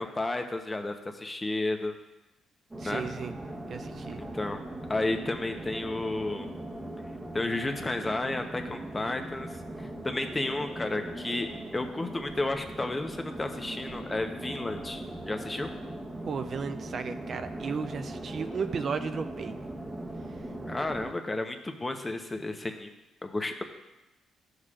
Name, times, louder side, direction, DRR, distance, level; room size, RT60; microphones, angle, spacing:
voice 1, 0.0-1.9 2.8-3.0 4.2-4.6 4.9-6.5 7.3-9.5 9.8-15.7 20.7-22.9 23.2-23.6, left 2 dB, 20° left, 6 dB, 0.8 m, -32 dB
sound 1, 2.7-21.1, right 1 dB, 15° right, 1.0 m, -40 dB
voice 2, 2.8-3.3 3.7-4.2 16.3-19.6 20.3-20.4, right 5 dB, 50° right, 9 dB, 0.4 m, -34 dB
12.5 x 6.5 x 2.5 m, 1.0 s
cardioid pair, 90°, 0 cm